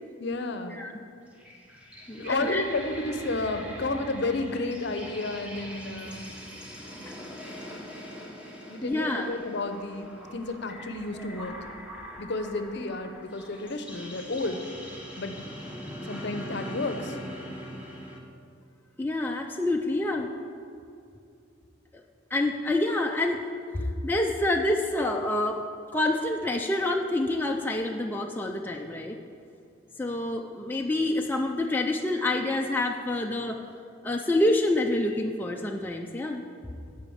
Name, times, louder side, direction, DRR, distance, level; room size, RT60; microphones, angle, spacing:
voice 1, 0.2-0.8 2.2-6.2 8.7-11.5 12.2-14.6 15.2-15.4 16.0-17.2, left 2 dB, 55° left, 7 dB, 0.7 m, -31 dB
sound 1, 1.3-18.2, equal, 5° right, 1.0 m, -42 dB
voice 2, 2.1-2.6 7.1-7.2 8.8-9.4 11.2-11.4 19.0-20.3 21.9-22.0 22.3-23.4 23.7-25.6 25.9-29.2 30.0-33.6 34.0-36.4, left 1 dB, 10° left, 1 dB, 0.4 m, -27 dB
10.5 x 5.0 x 7.0 m, 2.5 s
head